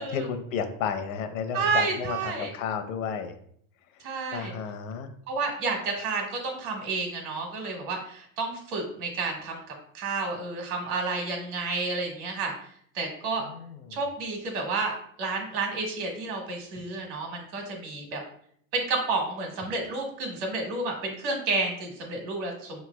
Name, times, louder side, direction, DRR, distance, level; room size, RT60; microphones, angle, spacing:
voice 1, 0.0-3.3 3.9-5.1 13.4-14.0, left 7 dB, 75° left, 8 dB, 0.7 m, -33 dB
voice 2, 1.5-2.5 4.0-4.5 5.3-9.6 9.9-12.5 12.9-13.4 13.9-18.2 18.7-22.8, right 3 dB, 60° right, 2 dB, 1.4 m, -30 dB
5.6 x 3.1 x 2.3 m, 0.64 s
supercardioid pair, 145°, 41 cm